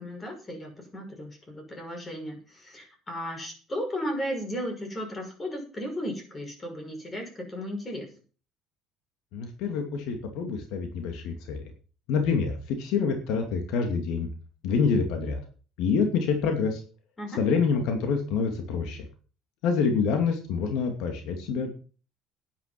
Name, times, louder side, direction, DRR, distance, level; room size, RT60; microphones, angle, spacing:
voice 1, 0.0-8.1 17.2-17.4, equal, 20° left, 3 dB, 6.5 m, -35 dB
voice 2, 9.3-11.6 12.1-14.3 14.6-15.4 15.8-16.8 17.4-19.0 19.6-21.7, left 5 dB, 80° left, 4 dB, 2.5 m, -26 dB
11.0 x 10.5 x 6.0 m, 0.38 s
cardioid pair, 120°, 0 cm